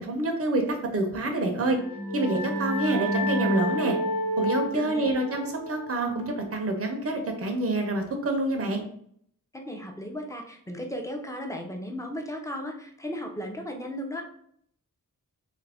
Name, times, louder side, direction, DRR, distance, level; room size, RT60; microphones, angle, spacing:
voice 1, 0.0-1.8 2.1-4.0 4.4-8.8, right 2 dB, 45° right, 3 dB, 0.6 m, -27 dB
sound 1, 1.6-7.0, equal, 65° left, 1.0 m, -30 dB
voice 2, 4.7-5.1 9.5-14.2, equal, 10° left, 2 dB, 0.6 m, -35 dB
3.1 x 2.4 x 3.4 m, 0.66 s
wide cardioid pair, 60°, 34 cm